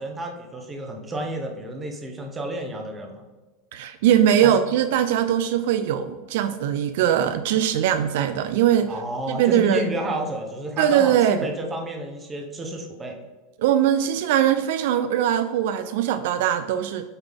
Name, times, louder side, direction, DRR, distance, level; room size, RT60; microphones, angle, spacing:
voice 1, 0.0-3.2 4.4-4.5 8.9-13.2, right 1 dB, 10° right, 2 dB, 0.7 m, -31 dB
voice 2, 3.7-8.9 9.3-9.9 10.8-11.5 13.6-17.1, right 10 dB, 60° right, 10 dB, 0.3 m, -21 dB
8.0 x 3.8 x 3.5 m, 1.2 s
supercardioid pair, 180°, 0 cm